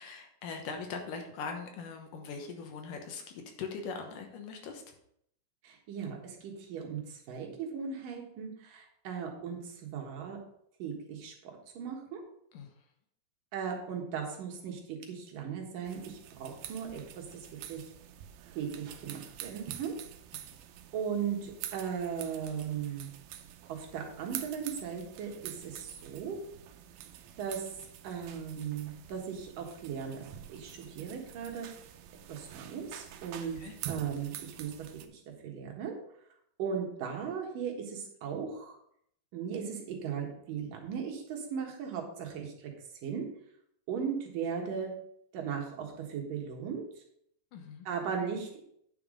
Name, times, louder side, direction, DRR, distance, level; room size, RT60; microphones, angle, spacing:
voice 1, 0.0-4.8 12.5-12.7 20.3-20.4 33.6-33.7 47.5-47.9, left 5 dB, 70° left, 4 dB, 2.5 m, -41 dB
voice 2, 5.6-10.4 10.8-12.2 13.5-17.9 18.6-19.9 20.9-23.1 23.7-26.4 27.4-27.7 28.0-30.2 30.5-31.7 32.3-33.6 33.9-34.7 35.1-36.0 36.6-38.8 39.3-42.7 43.0-43.3 43.9-44.9 45.3-47.0 47.9-48.6, right 7 dB, 70° right, 1 dB, 3.0 m, -37 dB
sound 1, 15.9-35.1, right 11 dB, 90° right, 2.6 m, -47 dB
9.8 x 5.9 x 5.1 m, 0.70 s
omnidirectional pair, 4.1 m